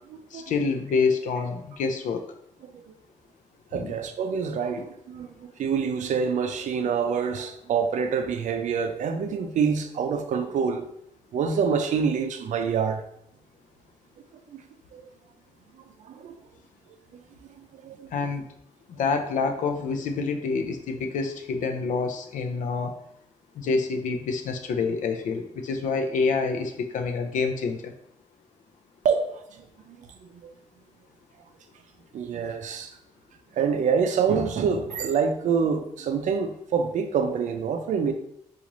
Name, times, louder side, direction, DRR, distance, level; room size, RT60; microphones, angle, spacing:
voice 1, 0.3-2.2 3.8-3.9 18.1-18.5 18.9-23.0 23.6-27.9, left 4 dB, 85° left, 0.5 m, -27 dB
voice 2, 3.7-10.8 11.3-13.0 14.9-15.0 16.1-16.3 17.8-18.1 29.0-29.3 29.9-30.0 32.1-32.9 33.6-38.1, right 6 dB, 70° right, 0.4 m, -26 dB
3.9 x 2.4 x 3.0 m
wide cardioid pair, 130°, 13 cm